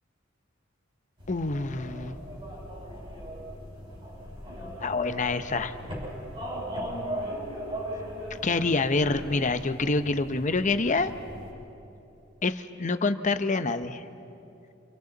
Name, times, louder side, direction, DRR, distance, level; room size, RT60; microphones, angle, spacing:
sound 1, 1.2-11.5, equal, 30° right, 6.6 m, -38 dB
voice 1, 1.3-2.2 4.8-5.7 8.4-11.1 12.4-14.0, left 3 dB, 40° left, 10 dB, 0.8 m, -26 dB
29.0 x 29.0 x 4.0 m, 2.8 s
head